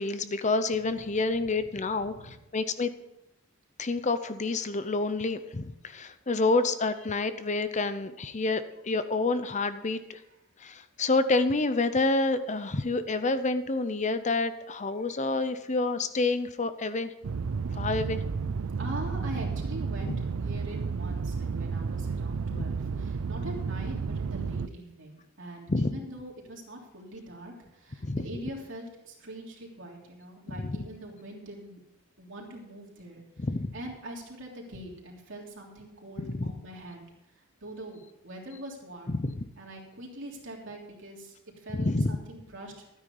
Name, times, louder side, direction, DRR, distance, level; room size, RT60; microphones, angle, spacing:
voice 1, 0.0-2.9 3.8-10.2 10.6-17.1 17.7-18.2 22.6-22.7 25.7-25.9 28.0-28.3 33.4-33.7 36.3-36.5 39.1-39.4 41.8-42.2, left 3 dB, 35° left, 11 dB, 0.7 m, -28 dB
voice 2, 0.8-2.4 10.1-10.2 17.7-18.1 18.8-31.8 32.2-33.5 33.7-37.0 37.3-39.2 39.6-42.8, right 1 dB, 60° right, -1 dB, 3.2 m, -43 dB
sound 1, 17.2-24.7, right 5 dB, 85° right, 0.5 m, -32 dB
13.0 x 9.6 x 5.4 m, 0.88 s
head